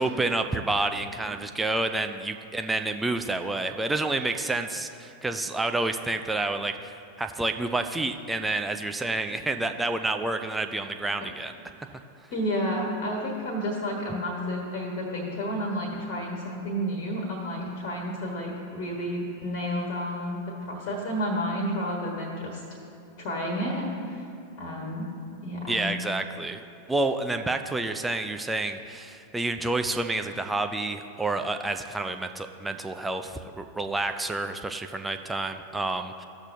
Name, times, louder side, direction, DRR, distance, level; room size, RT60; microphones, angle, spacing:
voice 1, 0.0-11.5 25.7-26.6 26.9-36.2, right 2 dB, 10° right, 6 dB, 0.4 m, -29 dB
voice 2, 12.3-22.6 23.2-24.3 24.6-25.1 25.4-25.9, equal, 45° left, -1 dB, 1.4 m, -31 dB
14.5 x 6.1 x 2.7 m, 2.5 s
figure-of-eight pair, 90°, 0 cm